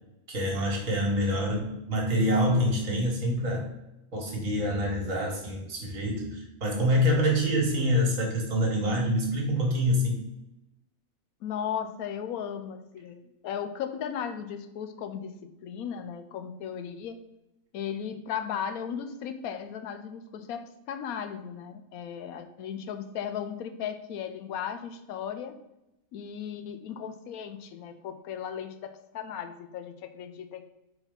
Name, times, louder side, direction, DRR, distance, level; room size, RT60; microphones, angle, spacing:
voice 1, 0.3-3.7 4.1-10.1, equal, 60° right, 0 dB, 1.8 m, -26 dB
voice 2, 1.3-1.8 11.4-15.3 15.6-17.2 17.7-25.6 26.1-30.7, left 8 dB, 75° left, 9 dB, 1.0 m, -36 dB
4.7 x 4.0 x 5.2 m, 0.92 s
omnidirectional pair, 1.5 m